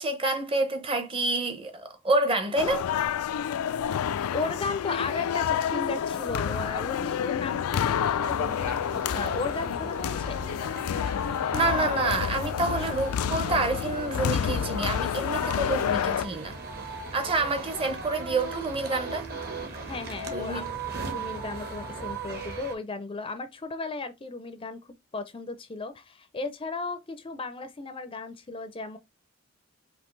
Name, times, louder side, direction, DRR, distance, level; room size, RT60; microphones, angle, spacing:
voice 1, 0.0-2.9 11.5-16.6 17.1-19.3 20.3-20.6, right 2 dB, 25° right, 0.7 m, -28 dB
sound 1, 2.6-16.3, left 8 dB, 85° left, 0.3 m, -29 dB
voice 2, 4.1-10.4 19.8-20.7 21.0-24.8 25.1-29.0, left 3 dB, 25° left, 0.4 m, -35 dB
sound 2, 8.2-22.7, right 3 dB, 45° right, 1.1 m, -38 dB
5.2 x 2.8 x 3.1 m
head